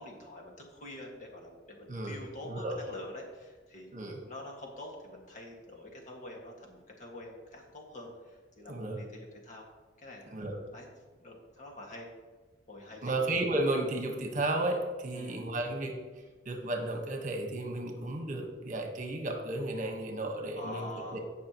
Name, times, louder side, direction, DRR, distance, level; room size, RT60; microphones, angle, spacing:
voice 1, 0.0-3.9 4.2-9.7 10.0-10.4 10.7-10.9 11.2-12.1 12.7-13.2 15.1-15.4 20.6-21.2, left 1 dB, 45° left, -1 dB, 1.9 m, -46 dB
voice 2, 2.4-2.8 3.9-4.2 8.7-9.0 10.3-10.6 13.0-16.0 16.4-21.2, right 2 dB, 45° right, 3 dB, 1.3 m, -33 dB
17.5 x 5.9 x 3.0 m, 1.3 s
head